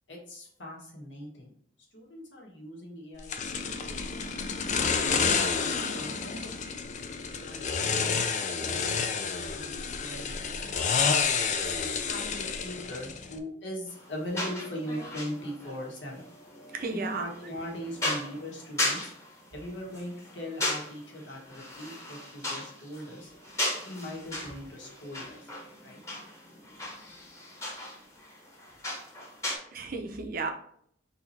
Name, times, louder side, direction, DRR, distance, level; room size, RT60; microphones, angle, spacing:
voice 1, 0.1-1.5 1.9-4.0 4.9-6.8 7.4-10.5 11.5-16.3 16.9-19.0 19.5-23.3 23.8-25.4 25.8-26.0, equal, 70° left, -2 dB, 1.5 m, -40 dB
sound 1, 3.3-13.4, left 5 dB, 40° left, 0.4 m, -29 dB
sound 2, 13.9-29.6, left 1 dB, 15° left, 1.2 m, -37 dB
voice 2, 16.7-17.3 29.7-30.5, right 4 dB, 50° right, 4 dB, 0.7 m, -33 dB
4.0 x 2.9 x 4.2 m, 0.65 s
head